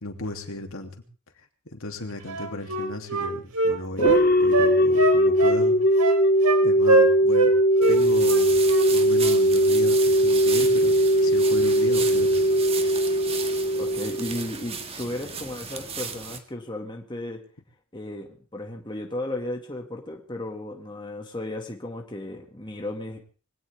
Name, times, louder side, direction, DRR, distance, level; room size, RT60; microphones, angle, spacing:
voice 1, 0.0-1.0 1.7-4.0 4.4-5.8 6.6-7.5 7.9-12.4, left 2 dB, 65° left, 4 dB, 2.9 m, -35 dB
Wind instrument woodwind instrument, 2.3-4.2 4.5-5.6 6.0-6.6 6.9-7.5 7.8-8.0 8.3-8.9 9.2-9.4, right 3 dB, 85° right, 3.9 m, -23 dB
sound 1, 4.0-14.7, equal, 40° left, 0.7 m, -20 dB
sound 2, 7.8-16.4, right 6 dB, 25° right, 1.8 m, -35 dB
voice 2, 13.8-17.4 17.9-23.2, left 1 dB, 20° left, 2 dB, 2.1 m, -34 dB
22.5 x 17.5 x 3.6 m, 0.38 s
head